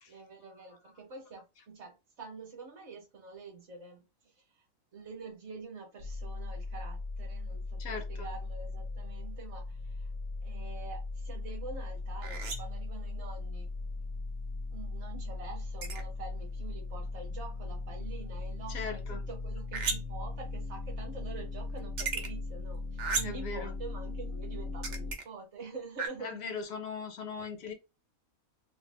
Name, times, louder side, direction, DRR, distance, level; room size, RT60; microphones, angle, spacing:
voice 1, 0.1-4.0 4.9-10.1 10.4-13.7 14.7-26.4, right 4 dB, 60° right, 1.0 m, -46 dB
sound 1, 6.0-25.1, left 3 dB, 60° left, 0.7 m, -38 dB
voice 2, 7.8-8.3 18.7-19.2 23.2-23.7 26.2-27.7, left 5 dB, 75° left, 1.1 m, -39 dB
sound 2, 12.2-12.8 15.8-16.0 19.7-20.3 21.8-22.3 23.0-23.5 24.8-25.2 26.0-26.1, right 4 dB, 75° right, 0.4 m, -34 dB
2.6 x 2.2 x 3.2 m
omnidirectional pair, 1.5 m